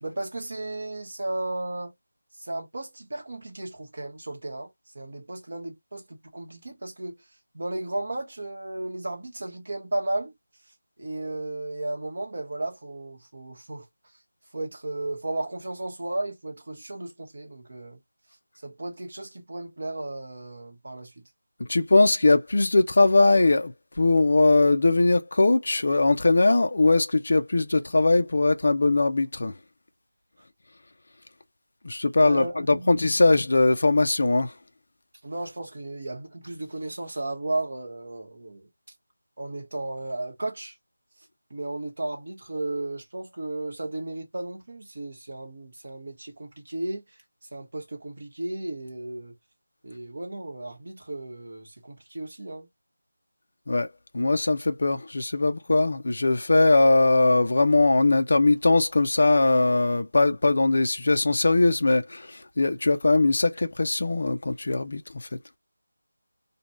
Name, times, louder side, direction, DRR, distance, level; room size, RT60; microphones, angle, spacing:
voice 1, 0.0-1.9 2.4-7.3 7.5-10.3 11.0-13.9 14.5-18.0 18.6-21.2 32.2-33.0 35.2-38.7 39.4-40.7 41.5-47.2 47.5-49.4 49.8-52.7, right 2 dB, 40° right, 1.0 m, -34 dB
voice 2, 21.6-23.7 24.0-29.5 31.8-34.5 53.7-53.9 54.1-65.3, left 2 dB, 35° left, 0.4 m, -21 dB
2.7 x 2.2 x 2.9 m
figure-of-eight pair, 180°, 0 cm